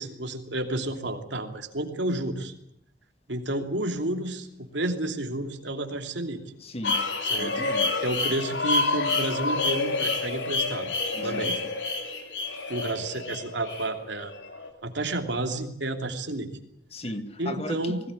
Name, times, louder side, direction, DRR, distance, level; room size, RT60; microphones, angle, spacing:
voice 1, 0.0-2.5 3.3-6.4 7.3-7.6 8.0-10.9 11.2-11.6 12.7-14.3 14.8-16.5 17.4-18.0, right 1 dB, 80° right, 4 dB, 3.0 m, -31 dB
voice 2, 6.6-7.0 7.4-7.9 11.1-11.5 16.9-18.0, left 1 dB, 35° left, 9 dB, 1.8 m, -36 dB
sound 1, 6.8-14.7, left 3 dB, 85° left, 3.3 m, -28 dB
21.0 x 18.0 x 9.8 m, 0.75 s
head